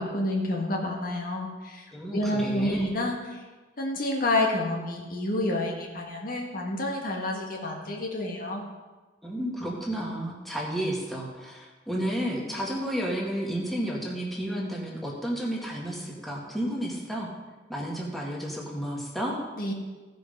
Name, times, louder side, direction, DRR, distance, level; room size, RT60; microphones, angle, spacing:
voice 1, 0.0-1.9 2.1-3.4 3.8-8.6 19.6-19.7, left 1 dB, 55° left, 0 dB, 1.5 m, -29 dB
voice 2, 1.9-2.9 9.2-17.3 17.7-19.4, equal, ahead, -3 dB, 1.8 m, -32 dB
16.0 x 5.4 x 5.3 m, 1.3 s
head